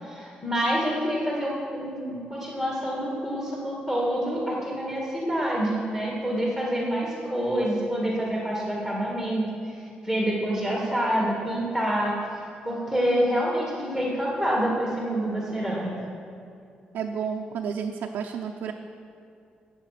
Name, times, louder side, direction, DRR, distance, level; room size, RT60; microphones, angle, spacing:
voice 1, 0.0-12.2 12.6-15.9, equal, 10° left, -4 dB, 2.0 m, -27 dB
voice 2, 16.9-18.7, right 7 dB, 90° right, 1 dB, 0.7 m, -31 dB
18.0 x 7.1 x 5.9 m, 2.5 s
cardioid pair, 145°, 3 cm